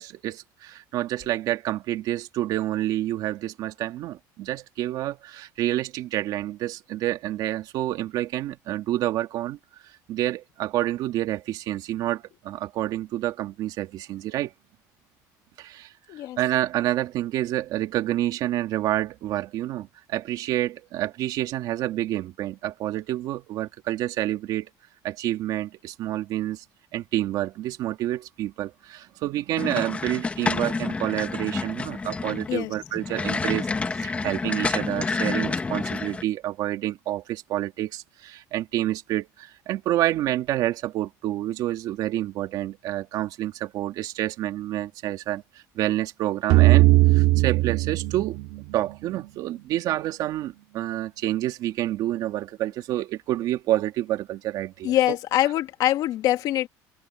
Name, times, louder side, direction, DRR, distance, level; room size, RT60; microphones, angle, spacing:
voice 1, 0.0-9.6 10.1-14.5 15.6-15.9 16.4-24.7 25.0-26.6 26.9-45.4 45.7-48.4 48.7-55.0, right 14 dB, 60° right, 2.3 m, -28 dB
sound 1, 29.6-36.2, left 4 dB, 15° left, 1.5 m, -29 dB
sound 2, 46.5-49.4, right 19 dB, 80° right, 2.1 m, -19 dB
voice 2, 54.8-56.7, left 13 dB, 60° left, 2.2 m, -24 dB
cardioid pair, 145°, 7 cm